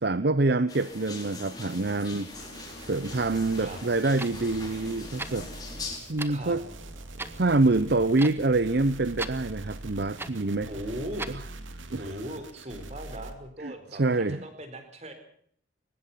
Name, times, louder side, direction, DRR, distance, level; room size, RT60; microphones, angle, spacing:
voice 1, 0.0-2.3 2.9-5.5 6.1-6.6 7.4-10.7 11.9-12.1 13.6-13.7 14.0-14.4, right 2 dB, 55° right, 15 dB, 0.8 m, -26 dB
sound 1, 0.7-6.0, left 3 dB, 20° left, 4.7 m, -42 dB
sound 2, 2.3-13.3, right 2 dB, 85° right, 2.5 m, -44 dB
Clock, 3.9-11.5, right 2 dB, 10° right, 1.2 m, -42 dB
voice 2, 10.7-11.3 12.0-15.1, equal, 35° right, 8 dB, 4.6 m, -38 dB
22.5 x 20.0 x 5.7 m, 0.62 s
head